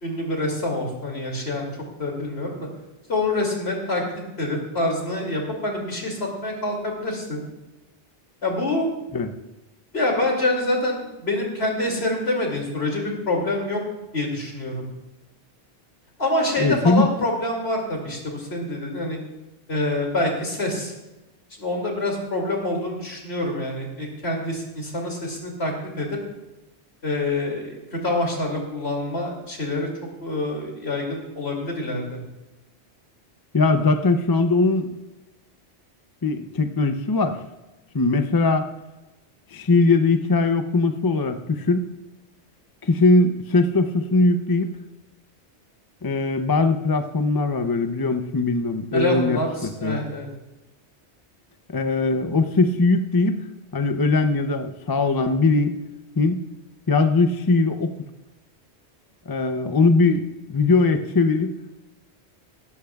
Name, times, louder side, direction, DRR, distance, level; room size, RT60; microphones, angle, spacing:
voice 1, 0.0-1.7 2.0-2.7 3.1-7.4 8.4-8.9 9.9-13.8 14.1-14.8 16.2-19.2 19.7-20.9 21.6-26.2 27.0-29.9 30.2-32.2 48.9-50.3, left 2 dB, 70° left, 0 dB, 2.9 m, -26 dB
voice 2, 16.6-17.1 33.5-35.0 36.2-37.4 37.9-38.7 39.5-41.9 42.8-44.7 46.0-49.4 49.8-50.0 51.7-53.4 53.7-55.8 56.2-56.4 56.9-57.9 59.3-61.6, left 3 dB, 25° left, 8 dB, 0.5 m, -20 dB
17.0 x 13.0 x 2.4 m, 1.0 s
omnidirectional pair, 1.1 m